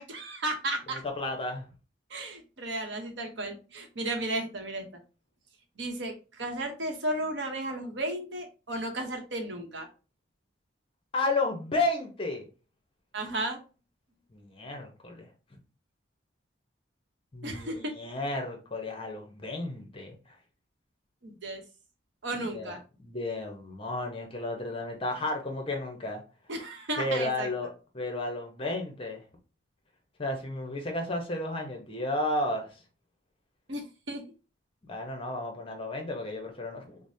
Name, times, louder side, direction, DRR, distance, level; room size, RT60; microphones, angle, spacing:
voice 1, 0.0-1.0 2.1-4.8 5.8-9.9 13.1-13.6 17.4-17.9 21.2-21.6 22.2-22.8 26.5-27.5 33.7-34.2, right 1 dB, 65° right, 4 dB, 0.8 m, -34 dB
voice 2, 0.9-1.7 11.1-12.5 14.3-15.3 17.3-20.1 22.3-26.2 27.0-27.7 27.9-29.2 30.2-32.7 34.8-37.0, left 2 dB, 30° left, 3 dB, 0.7 m, -33 dB
4.9 x 2.0 x 2.6 m, 0.33 s
head